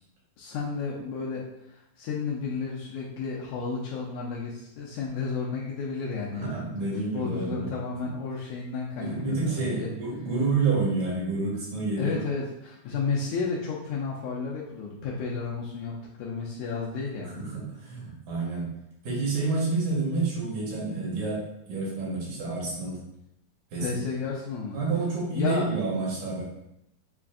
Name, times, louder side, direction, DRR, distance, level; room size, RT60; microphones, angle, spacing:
voice 1, 0.4-9.9 12.0-17.4 23.8-24.8 25.3-25.7, left 4 dB, 80° left, -5 dB, 1.9 m, -32 dB
voice 2, 6.3-7.7 9.0-12.2 17.4-18.7 19.0-23.0 23.7-24.0 24.7-26.4, right 3 dB, 85° right, -5 dB, 2.8 m, -29 dB
6.7 x 2.4 x 2.4 m, 0.82 s
omnidirectional pair, 3.5 m